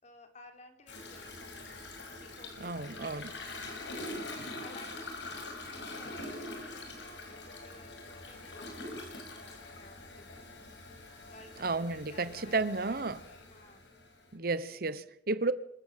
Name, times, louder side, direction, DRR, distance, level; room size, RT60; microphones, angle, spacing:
voice 1, 0.0-10.5 11.3-14.0, left 2 dB, 40° left, 4.2 m, -57 dB
Toilet flush, 0.9-14.3, left 2 dB, 90° left, 5.9 m, -44 dB
voice 2, 2.6-3.3 11.6-13.2 14.3-15.5, right 3 dB, 55° right, 1.1 m, -32 dB
25.5 x 14.5 x 7.6 m
head